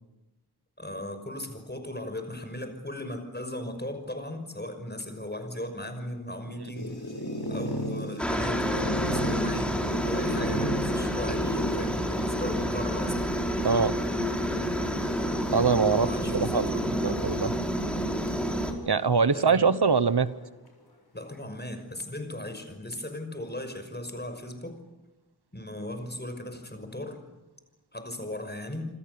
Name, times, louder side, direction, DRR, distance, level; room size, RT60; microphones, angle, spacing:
voice 1, 0.8-6.9 7.5-13.1 15.9-17.0 19.3-19.7 21.1-24.7 25.5-27.2 27.9-28.9, left 1 dB, 25° left, 7 dB, 5.8 m, -37 dB
sound 1, 6.7-16.2 17.0-17.5 17.9-18.0 18.3-18.4 19.3-20.4, equal, 75° left, 6.3 m, -36 dB
Aircraft, 8.2-18.7, equal, 5° left, 5.0 m, -29 dB
voice 2, 15.5-16.1 16.3-17.5 18.9-20.3, right 5 dB, 85° right, 14 dB, 1.1 m, -23 dB
27.5 x 26.5 x 7.0 m, 1.0 s
wide cardioid pair, 45°, 38 cm